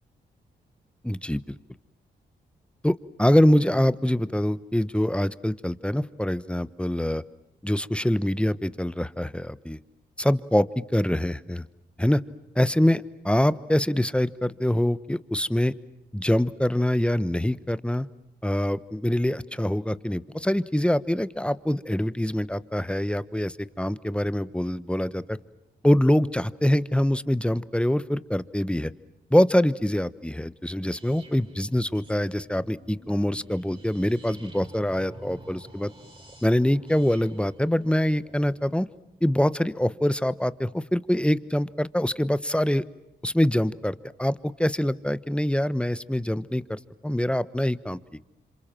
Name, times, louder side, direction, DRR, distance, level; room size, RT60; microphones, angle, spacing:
voice 1, 1.0-1.5 2.8-7.2 7.6-9.8 10.2-10.7 10.9-11.6 12.0-12.2 12.5-15.7 16.1-18.1 18.4-25.4 25.8-28.9 29.3-35.9 36.4-38.9 39.2-42.8 43.2-48.0, left 1 dB, 5° left, 16 dB, 1.1 m, -24 dB
sound 1, 30.9-38.7, right 1 dB, 25° right, 4.8 m, -49 dB
28.0 x 26.5 x 7.6 m, 0.90 s
supercardioid pair, 45°, 20 cm